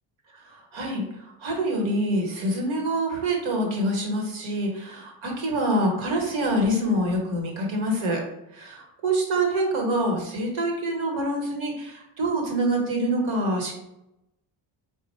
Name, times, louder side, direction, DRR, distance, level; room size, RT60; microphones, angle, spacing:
voice 1, 0.3-8.2 8.5-13.7, right 1 dB, 70° right, 1 dB, 1.2 m, -26 dB
3.7 x 2.1 x 4.2 m, 0.87 s
cardioid pair, 85°, 48 cm